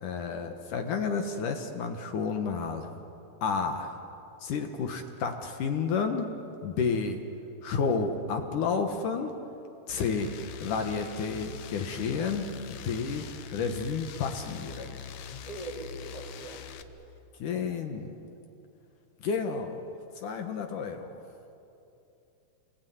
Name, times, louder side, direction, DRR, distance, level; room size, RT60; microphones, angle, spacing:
voice 1, 0.0-2.9 3.4-4.0 4.4-6.3 6.6-7.2 7.6-9.4 9.9-10.3 10.6-13.3 13.5-15.0 17.4-18.1 19.2-19.8 20.2-21.2, left 5 dB, 65° left, 5 dB, 2.4 m, -31 dB
sound 1, 9.9-16.8, left 7 dB, 80° left, 1.6 m, -43 dB
voice 2, 15.5-16.7, right 1 dB, 10° right, -1 dB, 2.8 m, -41 dB
27.5 x 21.5 x 9.4 m, 2.9 s
omnidirectional pair, 4.7 m